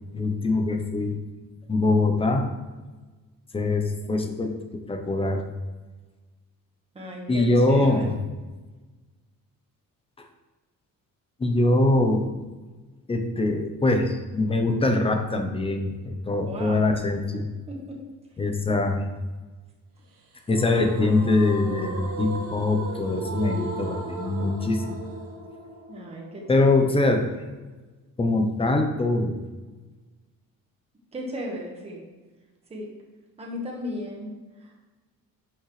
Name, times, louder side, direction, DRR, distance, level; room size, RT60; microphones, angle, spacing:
voice 1, 0.1-1.2 1.7-2.5 3.5-5.4 7.3-8.1 10.2-10.3 11.4-12.3 13.1-17.5 18.4-19.1 20.5-25.0 26.5-27.3 28.2-29.4, left 2 dB, 15° left, 5 dB, 0.7 m, -23 dB
voice 2, 6.9-8.0 16.5-16.9 17.7-18.0 25.9-26.8 31.1-32.0 32.7-32.9 33.4-34.3 34.6-34.7, equal, 15° right, -1 dB, 1.4 m, -35 dB
sound 1, 20.5-27.5, right 3 dB, 70° right, 1.5 m, -37 dB
10.5 x 6.6 x 3.2 m, 1.3 s
cardioid pair, 180°, 35 cm